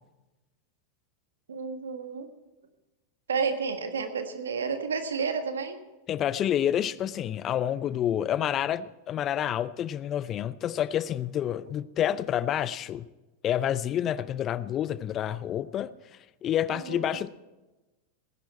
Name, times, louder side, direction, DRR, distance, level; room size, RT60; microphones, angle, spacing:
voice 1, 1.5-2.3 3.3-5.8 16.7-17.2, right 5 dB, 80° right, 1.5 m, -31 dB
voice 2, 6.1-13.1 13.4-15.9 16.4-17.3, left 10 dB, 35° left, 0.6 m, -28 dB
18.0 x 10.5 x 4.3 m
hypercardioid pair, 95°, 0 cm